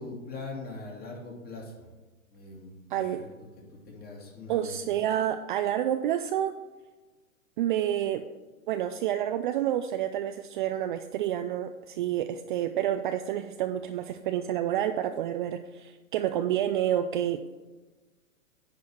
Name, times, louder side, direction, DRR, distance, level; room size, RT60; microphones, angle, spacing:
voice 1, 0.0-1.9 2.3-3.3 3.7-4.8, left 3 dB, 25° left, 0 dB, 2.4 m, -42 dB
voice 2, 4.5-6.5 7.6-8.2 8.7-17.6, right 11 dB, 40° right, 8 dB, 0.4 m, -29 dB
9.9 x 4.8 x 5.6 m, 1.2 s
hypercardioid pair, 115°, 41 cm